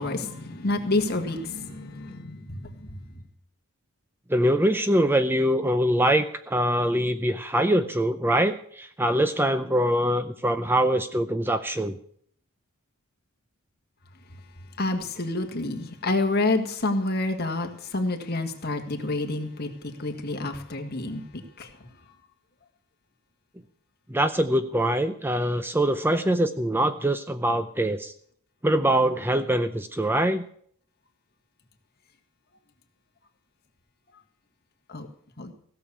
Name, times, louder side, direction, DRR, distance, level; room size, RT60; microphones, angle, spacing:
voice 1, 0.0-2.9 14.8-19.7 20.0-21.7 34.9-35.1 35.4-35.5, left 2 dB, 45° left, 4 dB, 1.8 m, -28 dB
voice 2, 4.3-12.0 24.1-28.1 28.6-30.5, right 1 dB, 10° right, 10 dB, 0.5 m, -23 dB
16.5 x 6.9 x 8.4 m, 0.62 s
head